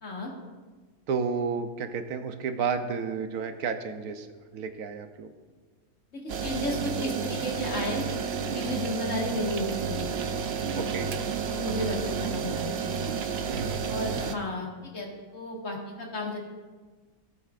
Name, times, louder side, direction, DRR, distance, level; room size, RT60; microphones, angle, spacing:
voice 1, 1.1-4.3 4.5-5.3 10.8-11.1 13.5-14.2, right 5 dB, 85° right, 7 dB, 1.3 m, -32 dB
voice 2, 6.1-10.0 10.6-10.9 11.5-12.8 13.9-16.4, left 1 dB, 55° left, -1 dB, 2.1 m, -33 dB
sound 1, 6.3-14.4, right 6 dB, 55° right, 0.7 m, -31 dB
17.5 x 8.3 x 2.5 m, 1.4 s
omnidirectional pair, 1.6 m